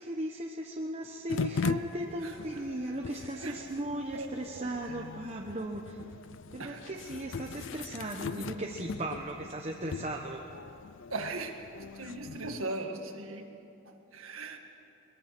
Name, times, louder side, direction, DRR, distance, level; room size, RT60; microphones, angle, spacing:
voice 1, 0.0-6.0 6.5-10.4, right 1 dB, 35° right, 1 dB, 1.1 m, -37 dB
sound 1, 1.3-12.6, left 5 dB, 60° left, 0.4 m, -39 dB
voice 2, 4.5-5.0 6.6-6.9 11.1-13.5 13.9-14.6, right 2 dB, 80° right, 4 dB, 1.9 m, -39 dB
22.0 x 21.5 x 6.1 m, 2.8 s
head